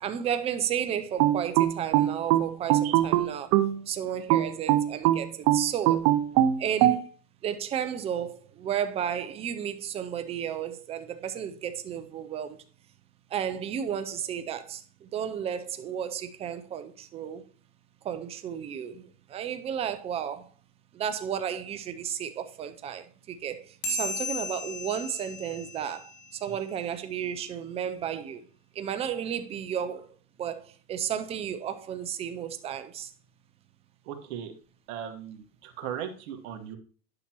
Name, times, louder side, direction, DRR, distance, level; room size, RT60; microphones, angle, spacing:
voice 1, 0.0-3.5 3.9-6.1 6.6-7.1 7.4-12.6 13.3-17.4 18.0-20.5 20.9-28.5 28.8-30.1 30.4-33.1, right 9 dB, 15° right, 0.4 m, -33 dB
sound 1, 1.2-3.8 4.3-7.0, right 13 dB, 45° right, 0.7 m, -22 dB
sound 2, 23.8-26.7, left 2 dB, 85° left, 2.5 m, -36 dB
voice 2, 34.0-34.5 34.9-36.8, right 9 dB, 60° right, 1.6 m, -37 dB
10.0 x 5.8 x 2.9 m
supercardioid pair, 120°, 48 cm